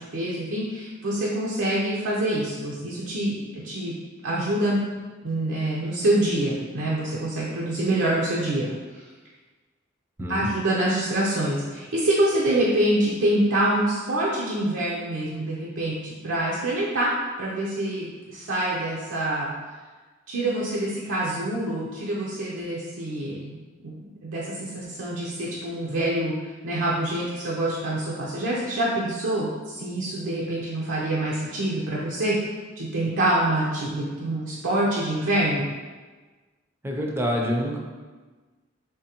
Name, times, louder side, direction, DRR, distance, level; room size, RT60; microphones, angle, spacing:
voice 1, 0.0-3.9 4.2-4.8 5.2-8.7 8.9-9.0 10.3-17.1 17.4-19.5 20.3-23.6 23.8-32.4 32.8-35.7, right 1 dB, 80° right, -6 dB, 0.5 m, -26 dB
voice 2, 10.2-10.5 36.8-37.8, equal, 10° right, 0 dB, 0.4 m, -26 dB
3.6 x 3.2 x 2.8 m, 1.3 s
head